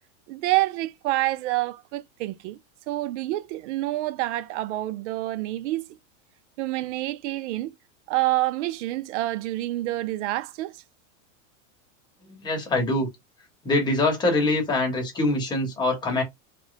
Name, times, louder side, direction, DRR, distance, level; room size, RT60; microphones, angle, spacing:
voice 1, 0.3-2.6 2.9-5.9 6.6-7.7 8.1-10.7, right 17 dB, 65° right, 0.5 m, -27 dB
voice 2, 12.4-13.1 13.6-16.2, left 2 dB, 10° left, 1.1 m, -24 dB
3.2 x 2.1 x 3.9 m
supercardioid pair, 170°, 38 cm